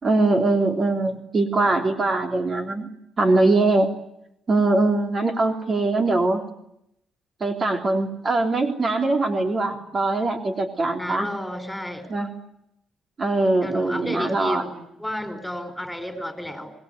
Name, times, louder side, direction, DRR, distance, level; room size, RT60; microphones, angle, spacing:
voice 1, 0.0-2.9 3.2-3.9 4.5-6.4 7.4-11.3 12.1-12.3 13.2-14.6, right 2 dB, 40° right, 4 dB, 3.3 m, -22 dB
voice 2, 11.0-12.1 13.6-14.7 15.0-16.7, left 1 dB, 5° left, 9 dB, 4.9 m, -31 dB
26.5 x 20.5 x 9.4 m, 0.82 s
cardioid pair, 90°, 0 cm